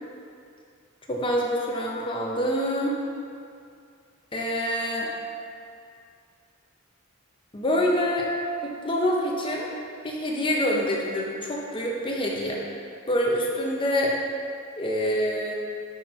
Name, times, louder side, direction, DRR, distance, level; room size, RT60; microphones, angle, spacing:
voice 1, 1.1-3.0 4.3-5.1 7.5-8.3 8.6-9.7 10.0-12.6 13.1-14.1 14.8-15.5, equal, 25° left, -2 dB, 0.9 m, -26 dB
9.6 x 4.3 x 4.4 m, 2.4 s
head